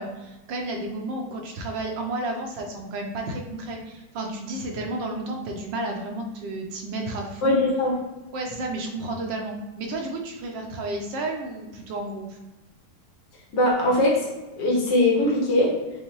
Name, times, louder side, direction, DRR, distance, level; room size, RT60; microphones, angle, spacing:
voice 1, 0.0-7.6 8.3-12.4, right 2 dB, 75° right, 2 dB, 1.3 m, -32 dB
voice 2, 7.4-7.9 13.5-14.3 14.6-15.7, left 1 dB, 70° left, -3 dB, 1.6 m, -21 dB
5.3 x 2.1 x 3.0 m, 1.1 s
omnidirectional pair, 2.0 m